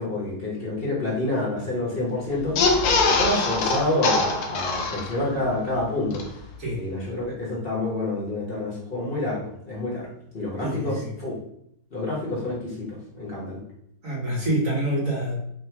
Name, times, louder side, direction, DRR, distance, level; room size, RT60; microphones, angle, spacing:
voice 1, 0.0-2.7 3.0-6.2 6.7-10.1 10.3-11.3 11.9-13.6, left 1 dB, 40° left, -5 dB, 1.0 m, -28 dB
long wet fart, 2.4-5.4 5.8-5.9 6.1-6.2, left 3 dB, 70° left, 0.9 m, -23 dB
voice 2, 10.6-11.1 14.0-15.4, right 1 dB, 50° right, -3 dB, 1.3 m, -26 dB
3.6 x 2.2 x 4.4 m, 0.73 s
omnidirectional pair, 2.0 m